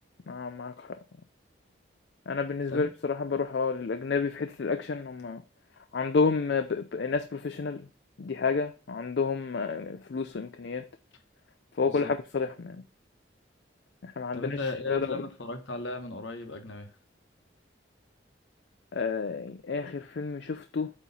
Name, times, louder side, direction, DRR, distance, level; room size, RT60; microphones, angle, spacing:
voice 1, 0.3-1.0 2.3-5.4 5.9-7.9 8.2-10.8 11.8-12.8 14.0-14.6 14.9-15.2 18.9-20.9, left 4 dB, 60° left, 0.4 m, -30 dB
voice 2, 14.3-16.9, left 3 dB, 80° left, 1.2 m, -36 dB
8.3 x 3.1 x 5.4 m
head